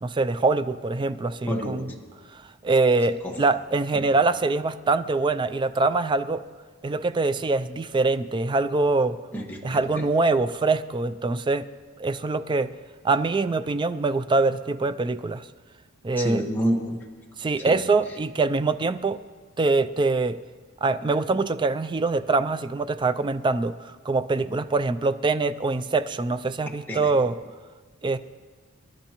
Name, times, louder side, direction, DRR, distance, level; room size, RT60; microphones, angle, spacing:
voice 1, 0.0-1.9 2.3-6.4 6.8-9.2 9.6-11.6 12.0-12.7 13.0-15.5 16.0-16.4 17.4-19.2 19.6-20.4 20.8-27.4 28.0-28.2, right 3 dB, 25° right, 12 dB, 0.3 m, -24 dB
voice 2, 1.5-1.8 3.2-3.3 9.3-9.8 16.2-17.0 26.9-27.1, equal, 10° left, -2 dB, 1.4 m, -27 dB
25.5 x 11.5 x 3.0 m, 1.5 s
head